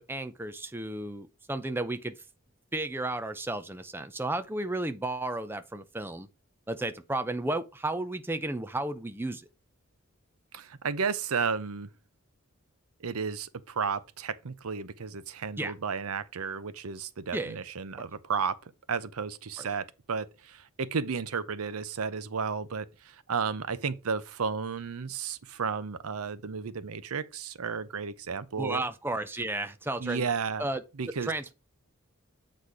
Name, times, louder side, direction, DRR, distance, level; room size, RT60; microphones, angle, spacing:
voice 1, 0.0-2.2 2.7-6.3 6.7-9.5 15.6-15.7 17.3-17.6 19.6-19.7 28.6-30.2 30.6-30.8 31.2-31.5, right 2 dB, 10° right, 0.5 m, -33 dB
voice 2, 10.5-11.9 13.0-18.6 18.9-28.8 30.0-30.7 31.0-31.3, right 5 dB, 85° right, 0.7 m, -33 dB
8.1 x 4.2 x 4.8 m
head